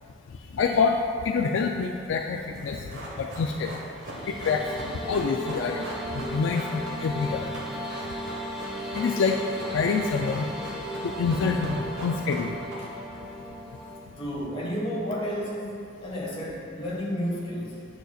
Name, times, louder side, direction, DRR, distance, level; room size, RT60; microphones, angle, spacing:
voice 1, 0.5-0.9 1.2-2.8 3.2-3.7 4.3-5.8 6.1-7.5 8.9-9.4 9.7-10.5 11.0-12.6, left 5 dB, 70° left, 2 dB, 0.3 m, -26 dB
Run, 2.5-13.2 13.4-13.5, right 1 dB, 80° right, 1.4 m, -40 dB
sound 1, 3.8-14.0, equal, ahead, 0.6 m, -36 dB
voice 2, 14.2-17.9, equal, 30° left, -5 dB, 1.3 m, -31 dB
9.2 x 6.3 x 2.3 m, 2.5 s
head